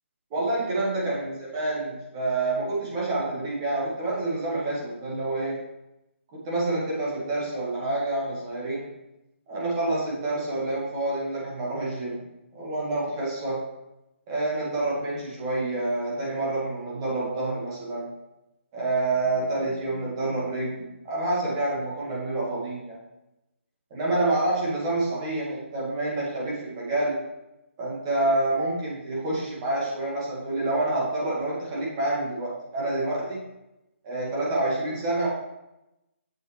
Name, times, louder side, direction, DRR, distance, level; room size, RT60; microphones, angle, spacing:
voice 1, 0.3-5.6 6.3-8.9 9.5-12.2 12.5-13.6 14.3-18.1 18.7-23.0 23.9-27.2 27.8-33.4 34.0-35.3, right 2 dB, 20° right, -5 dB, 1.6 m, -28 dB
7.7 x 6.2 x 3.2 m, 0.93 s
hypercardioid pair, 170°, 7 cm